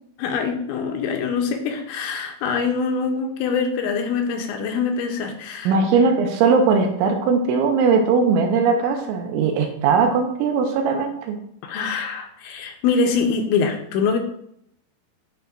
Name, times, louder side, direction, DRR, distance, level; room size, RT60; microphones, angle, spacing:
voice 1, 0.2-5.8 11.6-14.2, left 5 dB, 80° left, 4 dB, 2.9 m, -24 dB
voice 2, 5.7-11.4, right 5 dB, 80° right, 4 dB, 3.0 m, -19 dB
13.0 x 4.7 x 2.5 m, 0.72 s
omnidirectional pair, 5.5 m